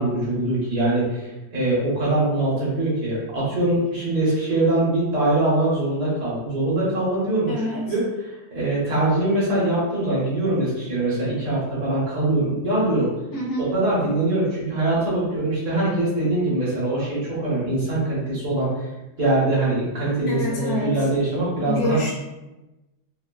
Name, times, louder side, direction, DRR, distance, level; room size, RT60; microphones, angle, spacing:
voice 1, 0.0-13.1 13.7-18.8 19.2-22.0, right 2 dB, 70° right, -8 dB, 1.9 m, -23 dB
voice 2, 7.5-7.8 13.3-13.7 20.3-20.9 21.7-22.1, left 2 dB, 70° left, -3 dB, 1.2 m, -26 dB
4.5 x 2.2 x 2.3 m, 1.0 s
omnidirectional pair, 1.8 m